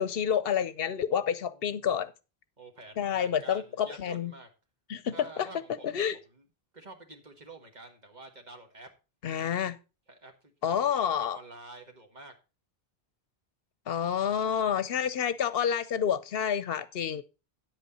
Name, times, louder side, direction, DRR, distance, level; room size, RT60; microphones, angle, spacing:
voice 1, 0.0-2.1 3.0-4.3 4.9-5.1 5.4-5.5 5.8-6.2 9.2-9.8 10.6-11.4 13.9-17.2, left 8 dB, 70° left, 0.8 m, -29 dB
voice 2, 1.1-1.9 2.6-4.5 5.1-6.4 6.7-8.9 10.1-12.3, right 2 dB, 45° right, 1.7 m, -49 dB
9.9 x 8.3 x 4.0 m
omnidirectional pair, 1.0 m